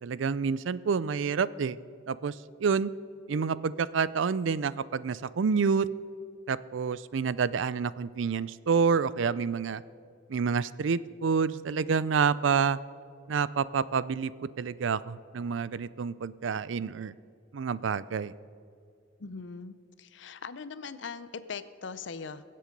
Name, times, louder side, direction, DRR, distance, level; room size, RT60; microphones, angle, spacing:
voice 1, 0.0-1.8 2.1-2.9 3.3-5.9 6.5-9.8 10.3-12.8 13.3-14.3 14.6-17.1 17.5-18.3, right 6 dB, 75° right, 18 dB, 0.4 m, -28 dB
voice 2, 19.2-22.4, left 5 dB, 65° left, 13 dB, 0.6 m, -41 dB
22.5 x 7.7 x 5.3 m, 2.2 s
head